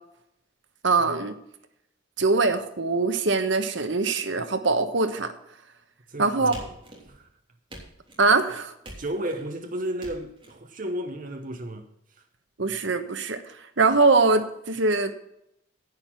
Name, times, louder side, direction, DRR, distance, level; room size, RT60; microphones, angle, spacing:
voice 1, 0.8-1.4 2.2-5.3 6.2-6.5 8.2-8.7 12.6-15.1, right 3 dB, 60° right, 1.1 m, -22 dB
voice 2, 6.1-6.7 7.1-7.3 9.0-12.2, right 1 dB, 40° right, 0.9 m, -33 dB
sound 1, 6.5-7.3 7.7-8.3 8.8-9.5 10.0-10.5, right 1 dB, 25° right, 3.4 m, -44 dB
10.5 x 9.3 x 5.8 m
head